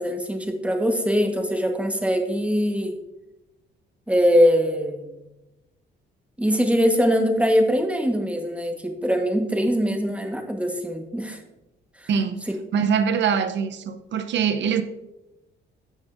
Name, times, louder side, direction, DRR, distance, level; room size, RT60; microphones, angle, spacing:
voice 1, 0.0-2.9 4.1-5.1 6.4-11.4 12.0-12.3, equal, 5° right, 1.3 m, -22 dB
voice 2, 12.1-12.4 12.7-14.8, right 7 dB, 65° right, 0.8 m, -23 dB
12.0 x 7.2 x 2.6 m
cardioid pair, 90°, 20 cm